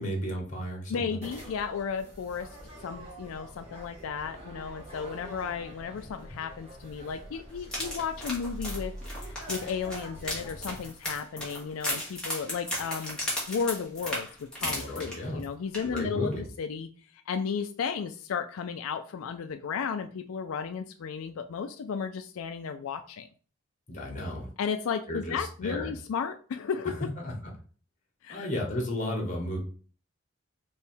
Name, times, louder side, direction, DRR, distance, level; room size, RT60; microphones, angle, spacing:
voice 1, 0.0-1.2 14.6-15.4 15.8-16.5 23.9-24.5 25.1-25.9 27.2-27.5 28.3-29.6, equal, 35° left, 1 dB, 1.3 m, -33 dB
voice 2, 0.9-2.5 2.8-8.9 9.5-13.2 13.5-16.9 17.3-23.3 24.6-27.1 28.2-28.5, left 6 dB, 90° left, 8 dB, 0.4 m, -34 dB
sound 1, 1.2-10.9, right 1 dB, 30° right, 1.8 m, -44 dB
sound 2, 7.6-15.4 15.7-16.0 16.3-16.4, left 1 dB, 5° left, 1.3 m, -35 dB
3.4 x 3.0 x 4.5 m, 0.41 s
head